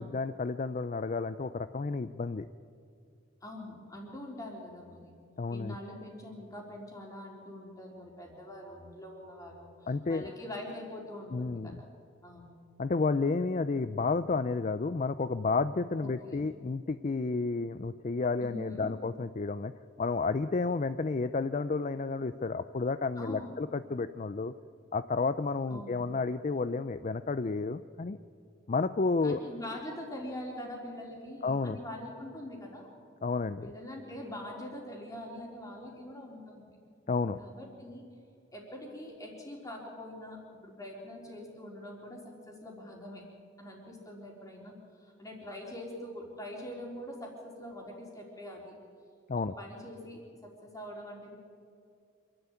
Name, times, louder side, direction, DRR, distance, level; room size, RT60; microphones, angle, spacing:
voice 1, 0.0-2.5 5.4-5.8 9.9-10.3 11.3-11.8 12.8-19.7 20.0-24.5 24.9-28.2 28.7-29.4 31.4-31.8 33.2-33.7 37.1-37.4 49.3-49.5, left 4 dB, 40° left, 12 dB, 0.4 m, -31 dB
voice 2, 3.4-5.2 5.5-11.8 12.2-12.5 16.0-16.5 18.4-19.0 23.2-23.6 25.7-26.0 29.2-33.0 33.6-36.7 37.4-38.0 38.5-43.2 43.6-48.7 49.3-51.4, left 1 dB, 20° left, -1 dB, 4.0 m, -44 dB
26.5 x 12.0 x 9.1 m, 2.3 s
head